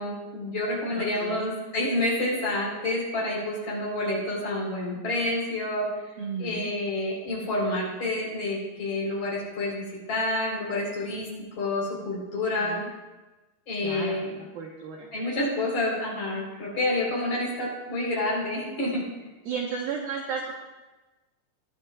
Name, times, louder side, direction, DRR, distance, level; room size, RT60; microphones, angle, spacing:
voice 1, 0.0-5.9 6.4-11.3 11.6-12.8 13.7-14.4 15.1-19.0, left 2 dB, 35° left, -4 dB, 4.7 m, -28 dB
voice 2, 0.9-1.5 6.2-6.7 12.6-12.9 13.8-15.1 17.3-17.4 19.5-20.5, right 6 dB, 85° right, -1 dB, 2.0 m, -34 dB
21.0 x 11.5 x 2.4 m, 1.1 s
omnidirectional pair, 5.9 m